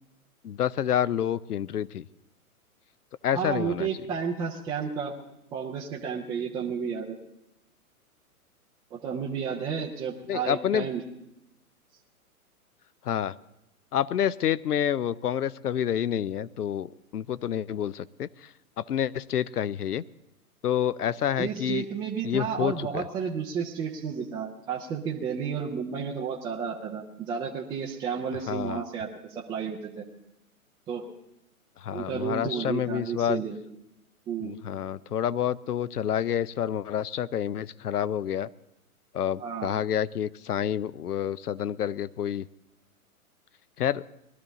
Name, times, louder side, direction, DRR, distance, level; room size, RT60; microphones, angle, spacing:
voice 1, 0.4-2.1 3.2-3.9 10.3-10.9 13.0-13.4 13.9-18.5 18.8-20.0 20.6-21.9 22.2-23.0 28.5-28.8 31.8-33.4 34.4-38.5 39.1-42.5 43.8-44.0, left 9 dB, 90° left, 19 dB, 0.6 m, -28 dB
voice 2, 3.3-5.1 5.5-7.2 8.9-11.0 21.4-30.0 30.9-31.0 31.9-33.6 34.3-34.6 39.4-39.7, right 6 dB, 10° right, -2 dB, 0.4 m, -32 dB
20.5 x 12.5 x 3.9 m, 0.86 s
hypercardioid pair, 120°, 44 cm